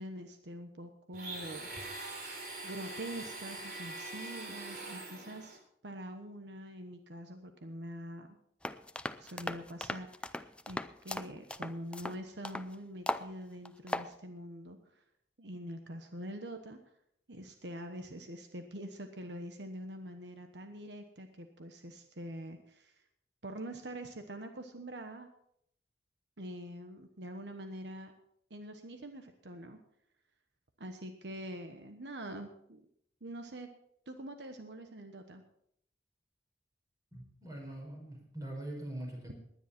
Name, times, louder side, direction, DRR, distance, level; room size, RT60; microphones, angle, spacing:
voice 1, 0.0-1.7 2.6-8.3 9.2-15.0 15.4-16.8 17.3-23.0 23.4-25.3 26.4-28.1 28.5-29.8 30.8-32.9 33.2-33.7 34.1-35.4, right 1 dB, 80° right, 6 dB, 1.2 m, -45 dB
Domestic sounds home sounds, 1.1-5.6, right 2 dB, 55° right, 3.6 m, -43 dB
sound 1, 8.6-12.7 13.1-13.3 13.7-14.1, left 1 dB, 5° left, 0.5 m, -38 dB
voice 2, 37.1-39.4, right 1 dB, 20° right, 0 dB, 5.2 m, -43 dB
19.5 x 10.5 x 4.4 m, 0.71 s
head